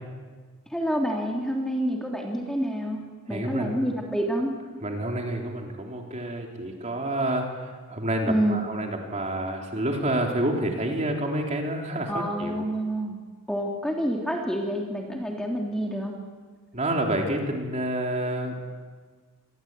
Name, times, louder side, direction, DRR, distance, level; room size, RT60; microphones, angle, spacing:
voice 1, 0.7-3.0 3.3-4.5 8.3-8.6 12.1-13.2 13.5-16.1, equal, 5° left, 0 dB, 3.3 m, -27 dB
voice 2, 3.3-3.8 4.8-12.7 16.7-18.6, right 1 dB, 30° right, 1 dB, 3.8 m, -28 dB
27.5 x 21.5 x 9.3 m, 1.5 s
head